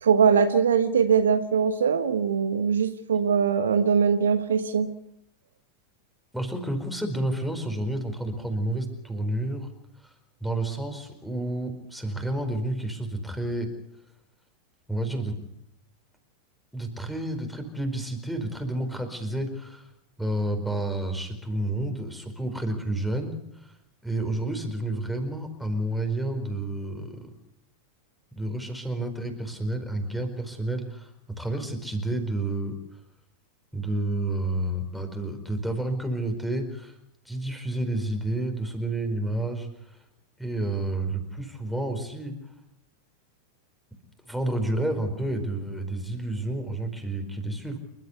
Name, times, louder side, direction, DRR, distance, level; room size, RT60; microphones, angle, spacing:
voice 1, 0.0-4.9, right 6 dB, 65° right, 11 dB, 1.2 m, -22 dB
voice 2, 6.3-9.7 10.0-10.1 10.4-13.7 14.9-15.4 16.7-19.9 20.2-23.8 24.0-27.3 28.4-33.0 33.7-37.0 37.2-40.0 40.4-42.4 44.2-47.8, right 1 dB, ahead, 6 dB, 4.6 m, -30 dB
29.0 x 13.0 x 8.3 m, 0.78 s
figure-of-eight pair, 90°, 0 cm